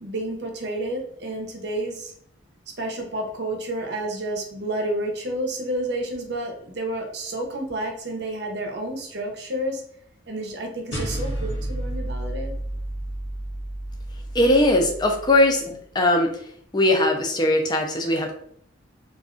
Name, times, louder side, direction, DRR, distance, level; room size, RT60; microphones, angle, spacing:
voice 1, 0.0-2.1 2.8-9.8 10.3-12.5, right 1 dB, 60° right, 2 dB, 0.7 m, -30 dB
sound 1, 10.9-15.5, right 1 dB, 70° left, 0.8 m, -31 dB
voice 2, 14.3-15.6 15.9-16.3 16.7-18.3, left 1 dB, 20° left, 2 dB, 0.5 m, -19 dB
2.5 x 2.3 x 3.6 m, 0.65 s
head